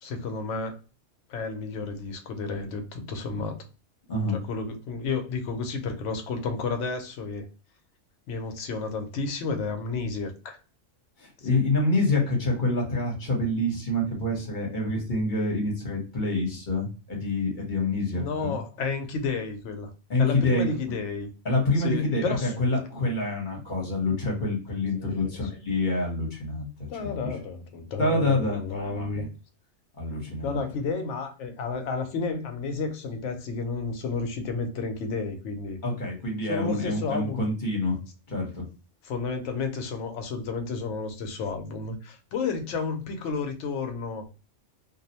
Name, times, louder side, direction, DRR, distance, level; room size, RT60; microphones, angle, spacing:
voice 1, 0.0-0.8 1.3-3.6 4.3-7.5 8.3-10.6 11.5-11.6 18.1-19.9 20.2-21.3 21.8-22.5 25.0-25.4 26.9-29.2 30.4-35.8 36.5-37.4 39.0-44.2, left 4 dB, 70° left, 6 dB, 0.9 m, -31 dB
voice 2, 11.2-18.6 20.1-20.7 21.4-27.3 28.0-29.3 30.0-30.6 35.8-38.0 38.3-38.7, left 2 dB, 45° left, -2 dB, 1.0 m, -27 dB
2.5 x 2.0 x 2.7 m, 0.34 s
omnidirectional pair, 1.3 m